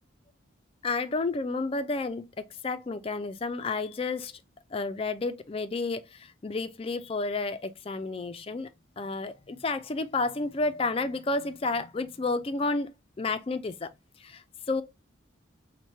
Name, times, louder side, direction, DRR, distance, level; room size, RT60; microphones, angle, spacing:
voice 1, 0.8-4.3 4.7-8.7 9.0-13.9 14.2-14.8, left 3 dB, 25° left, 0.3 m, -31 dB
5.4 x 2.2 x 3.1 m
head